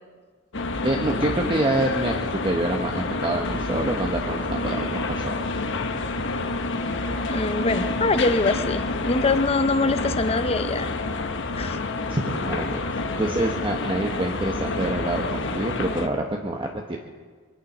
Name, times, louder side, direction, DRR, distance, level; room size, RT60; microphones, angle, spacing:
sound 1, 0.5-16.1, left 3 dB, 55° left, 1.1 m, -28 dB
voice 1, 0.8-5.3 12.1-17.0, right 1 dB, 25° right, 1 dB, 1.0 m, -27 dB
voice 2, 7.3-10.9 11.6-11.8, left 3 dB, 25° left, 11 dB, 0.7 m, -23 dB
23.0 x 9.8 x 6.1 m, 1.5 s
head